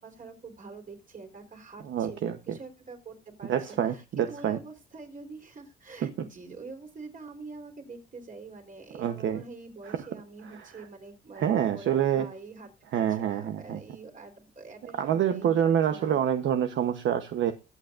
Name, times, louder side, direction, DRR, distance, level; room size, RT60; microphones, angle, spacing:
voice 1, 0.0-16.2, right 3 dB, 40° right, 4.2 m, -45 dB
voice 2, 1.9-2.4 3.5-4.6 6.0-6.1 9.0-9.4 9.9-10.0 11.3-12.3 12.9-13.8 15.0-17.5, right 9 dB, 70° right, 1.1 m, -26 dB
21.5 x 8.2 x 2.6 m
cardioid pair, 90°, 20 cm